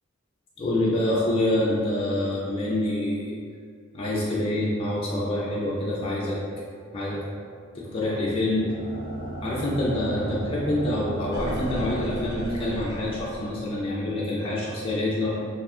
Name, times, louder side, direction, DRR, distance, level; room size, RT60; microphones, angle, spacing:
voice 1, 0.6-3.3 3.9-6.4 6.9-7.2 7.7-8.7 9.4-15.4, left 1 dB, 25° left, -7 dB, 0.4 m, -26 dB
sound 1, 8.3-13.8, right 1 dB, 85° right, 1.1 m, -35 dB
2.6 x 2.2 x 3.5 m, 2.2 s
head